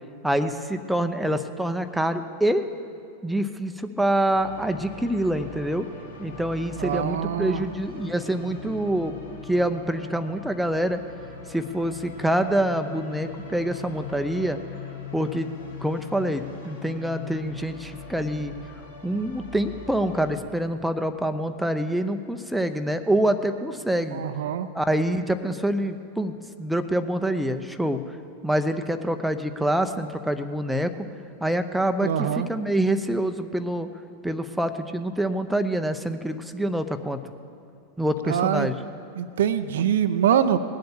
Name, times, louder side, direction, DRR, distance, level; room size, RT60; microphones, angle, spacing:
voice 1, 0.2-2.7 3.2-5.9 6.2-9.1 9.5-11.0 11.5-14.6 15.1-15.5 15.8-18.5 19.0-24.2 24.7-28.0 28.4-30.9 31.4-33.9 34.2-37.2 38.0-38.7, right 1 dB, ahead, 7 dB, 0.7 m, -26 dB
sound 1, 4.3-20.3, left 4 dB, 75° left, 2.3 m, -41 dB
voice 2, 6.8-7.6 24.1-24.7 32.0-32.5 38.3-38.7 39.2-40.6, right 9 dB, 60° right, 11 dB, 0.5 m, -24 dB
19.5 x 7.7 x 7.0 m, 2.5 s
figure-of-eight pair, 90°, 0 cm